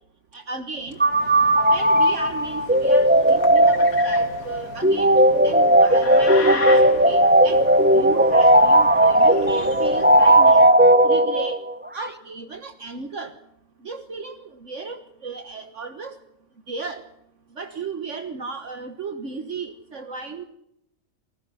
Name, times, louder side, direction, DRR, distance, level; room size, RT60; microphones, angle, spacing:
voice 1, 0.3-1.0 1.7-7.6 7.9-10.7 11.0-11.6 11.9-13.3 13.8-14.4 14.6-16.1 16.7-17.0 17.6-20.4, right 4 dB, 60° right, 7 dB, 1.8 m, -35 dB
sound 1, 0.9-10.7, left 4 dB, 85° left, 2.3 m, -36 dB
sound 2, 1.0-11.7, right 1 dB, 10° right, 0.8 m, -16 dB
28.5 x 19.5 x 5.8 m, 0.82 s
omnidirectional pair, 1.5 m